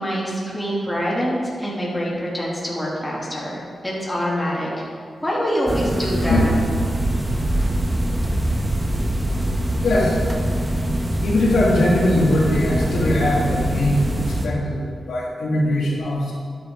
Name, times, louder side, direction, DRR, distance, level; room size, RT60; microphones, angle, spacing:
voice 1, 0.0-4.9 5.2-6.5, equal, 5° left, -6 dB, 2.9 m, -25 dB
sound 1, 5.7-14.5, right 1 dB, 20° right, 1.2 m, -23 dB
voice 2, 9.8-10.2 11.2-16.3, left 1 dB, 85° left, -5 dB, 2.7 m, -20 dB
12.0 x 9.5 x 3.9 m, 2.3 s
wide cardioid pair, 100°, 0 cm